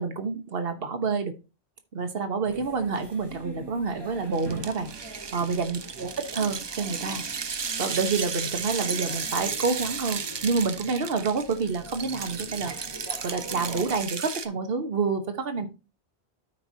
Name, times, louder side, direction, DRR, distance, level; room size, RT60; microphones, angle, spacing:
voice 1, 0.0-1.3 1.9-12.9 13.2-15.7, right 4 dB, 60° right, 8 dB, 1.3 m, -28 dB
sound 1, 2.4-14.0, right 2 dB, 25° right, 1.1 m, -44 dB
sound 2, 4.3-14.5, right 5 dB, 45° right, 0.3 m, -34 dB
13.0 x 4.8 x 2.7 m, 0.28 s
omnidirectional pair, 1.1 m